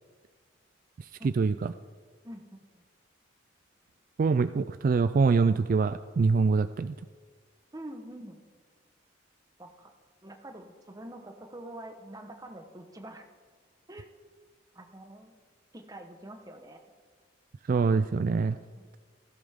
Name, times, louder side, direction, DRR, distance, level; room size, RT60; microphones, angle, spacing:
voice 1, 1.0-1.7 4.2-6.9 17.7-18.6, right 4 dB, 45° right, 12 dB, 0.3 m, -25 dB
voice 2, 2.2-2.8 7.7-8.4 9.6-9.9 10.2-13.2 13.9-14.1 14.7-15.3 15.7-16.8 18.7-18.9, right 1 dB, 20° right, 5 dB, 1.1 m, -45 dB
19.0 x 15.5 x 3.6 m, 1.5 s
head